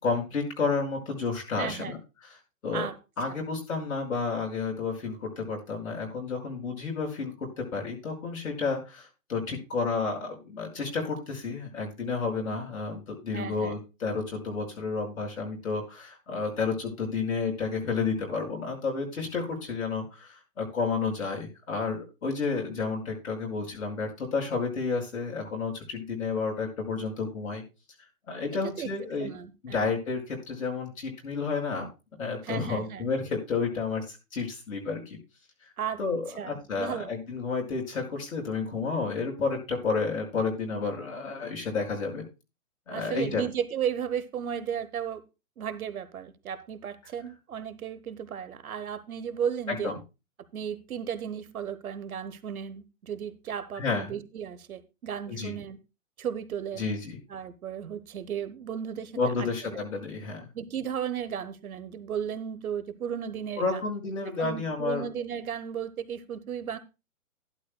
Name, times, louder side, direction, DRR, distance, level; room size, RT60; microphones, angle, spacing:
voice 1, 0.0-2.0 2.6-2.9 3.2-27.6 28.3-29.3 29.6-31.9 32.2-35.2 36.0-42.2 42.9-43.4 49.7-49.9 53.7-54.1 55.3-55.5 56.8-57.2 59.1-60.5 63.6-65.0, left 4 dB, 75° left, 0 dB, 5.4 m, -31 dB
voice 2, 1.6-1.9 2.7-2.9 3.3-3.4 13.3-13.7 28.6-28.9 29.2-29.9 32.4-33.1 35.8-36.0 36.4-37.1 42.9-45.2 45.6-49.9 50.5-55.8 56.2-56.9 57.3-59.9 60.5-63.8 64.4-66.8, right 8 dB, 85° right, 14 dB, 1.2 m, -35 dB
12.5 x 11.5 x 2.2 m, 0.28 s
hypercardioid pair, 145°, 42 cm